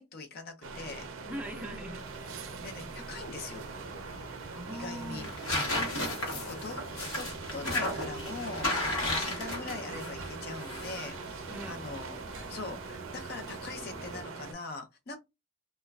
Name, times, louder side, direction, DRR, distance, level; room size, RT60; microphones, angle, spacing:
voice 1, 0.0-1.1 2.6-3.7 4.7-5.3 6.3-15.2, left 3 dB, 45° left, 0.5 m, -42 dB
sound 1, 0.6-14.5, right 4 dB, 65° right, 0.4 m, -42 dB
voice 2, 1.3-2.3 4.5-5.3 9.2-9.4 11.5-12.0, equal, 5° right, 0.4 m, -42 dB
sound 2, 2.0-14.2, left 1 dB, 70° left, 1.0 m, -36 dB
3.0 x 2.2 x 2.3 m
head